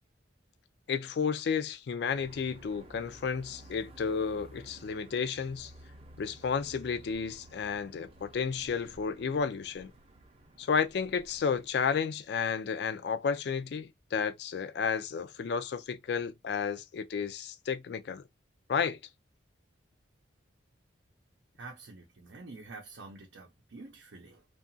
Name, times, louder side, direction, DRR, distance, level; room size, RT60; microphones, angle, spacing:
voice 1, 0.9-5.7 6.2-9.9 10.6-18.2 18.7-19.0, left 6 dB, 60° left, 0.3 m, -32 dB
sound 1, 2.1-11.7, right 1 dB, 30° right, 0.5 m, -54 dB
voice 2, 21.6-24.5, right 3 dB, 80° right, 0.6 m, -48 dB
2.8 x 2.4 x 2.5 m
head